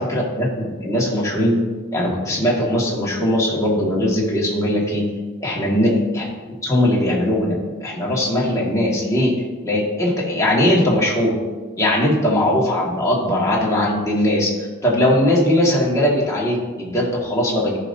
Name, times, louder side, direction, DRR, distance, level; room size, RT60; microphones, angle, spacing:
voice 1, 0.0-1.6 1.9-5.0 5.4-6.2 6.6-9.3 9.6-11.3 11.8-14.5 14.8-17.8, left 1 dB, 15° left, -5 dB, 1.9 m, -19 dB
14.5 x 5.5 x 2.7 m, 1.3 s
head